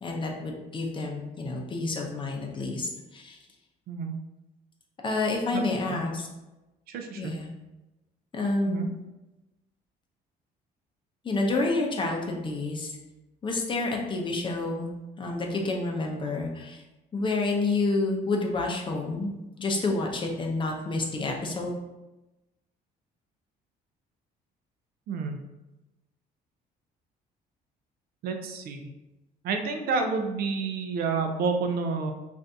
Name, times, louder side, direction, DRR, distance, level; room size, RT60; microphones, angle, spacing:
voice 1, 0.0-3.4 5.0-6.3 7.2-7.5 8.3-8.8 11.2-13.0 13.4-14.9 15.2-16.8 17.1-19.3 19.6-21.8, left 2 dB, 30° left, 1 dB, 0.6 m, -29 dB
voice 2, 6.9-7.3 8.7-8.9 25.1-25.4 28.2-28.9 29.4-32.1, right 4 dB, 65° right, 4 dB, 0.5 m, -29 dB
2.6 x 2.5 x 3.4 m, 1.0 s
cardioid pair, 110°, 17 cm